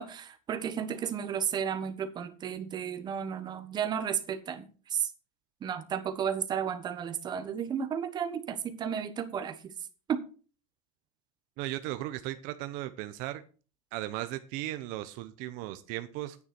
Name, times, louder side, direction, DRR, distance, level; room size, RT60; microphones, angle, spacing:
voice 1, 0.0-4.6 4.9-5.1 5.6-9.7 10.1-10.2, right 8 dB, 25° right, 9 dB, 1.3 m, -33 dB
voice 2, 11.6-13.4 13.9-16.4, right 15 dB, 50° right, 10 dB, 0.8 m, -36 dB
9.7 x 9.6 x 4.4 m, 0.37 s
supercardioid pair, 160°, 17 cm